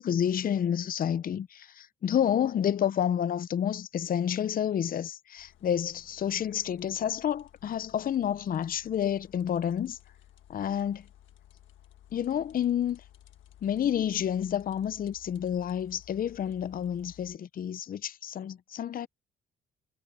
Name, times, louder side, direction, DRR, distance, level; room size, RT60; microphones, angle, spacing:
voice 1, 0.0-10.0 10.5-11.1 12.1-13.0 13.6-19.1, left 9 dB, 45° left, 0.6 m, -29 dB
sound 1, 5.4-17.4, left 11 dB, 80° left, 1.4 m, -56 dB
cardioid pair, 90°, 20 cm